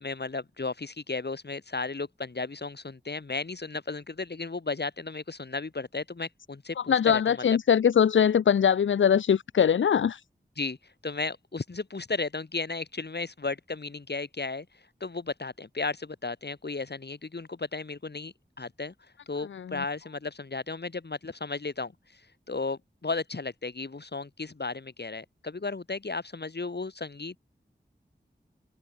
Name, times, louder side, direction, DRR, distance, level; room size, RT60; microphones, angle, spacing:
voice 1, 0.0-7.6 10.6-10.8 11.0-14.7 15.0-18.9 19.3-22.2 22.5-27.4, left 3 dB, 60° left, 2.9 m, -34 dB
voice 2, 6.9-10.2 19.5-19.6, left 8 dB, 85° left, 0.4 m, -22 dB
wide cardioid pair, 55°, 19 cm